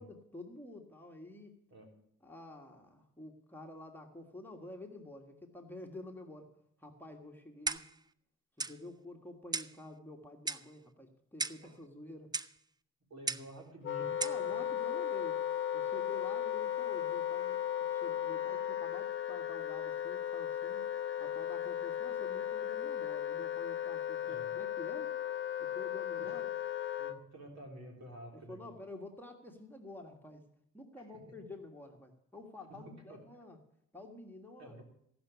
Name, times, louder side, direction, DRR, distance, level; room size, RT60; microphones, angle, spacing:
voice 1, 0.0-1.5 2.2-6.5 6.8-7.8 8.6-12.3 14.2-15.4 15.7-17.6 17.9-20.8 21.2-25.1 25.6-26.5 28.3-30.4 30.7-33.6 33.9-34.8, left 2 dB, 5° left, 1 dB, 1.6 m, -49 dB
Clock, 7.7-8.0 8.6-8.8 9.5-9.8 10.5-10.7 11.4-11.7 12.3-12.5 13.3-13.5 14.2-14.4, right 3 dB, 15° right, 0.4 m, -36 dB
voice 2, 13.1-14.2 14.5-14.6 16.3-16.4 24.2-24.5 26.2-26.4 27.0-28.8 31.0-31.2 32.7-33.2 34.6-34.8, right 1 dB, 60° right, 1 dB, 3.9 m, -50 dB
Wind instrument woodwind instrument, 13.8-27.2, left 10 dB, 40° left, 1.0 m, -36 dB
15.5 x 6.0 x 8.0 m, 0.74 s
cardioid pair, 90°, 30 cm